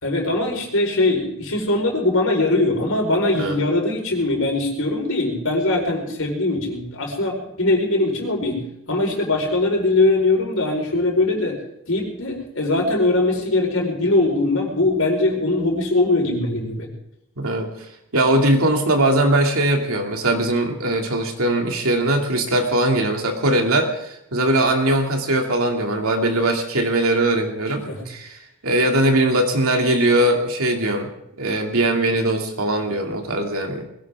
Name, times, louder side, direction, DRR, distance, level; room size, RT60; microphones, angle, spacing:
voice 1, 0.0-8.6 8.9-11.6 11.9-16.9 27.9-28.0, left 2 dB, 70° left, 1 dB, 4.7 m, -21 dB
voice 2, 17.4-17.7 18.1-31.1 31.4-33.9, right 1 dB, 75° right, 2 dB, 2.7 m, -20 dB
21.0 x 17.0 x 3.7 m, 0.81 s
head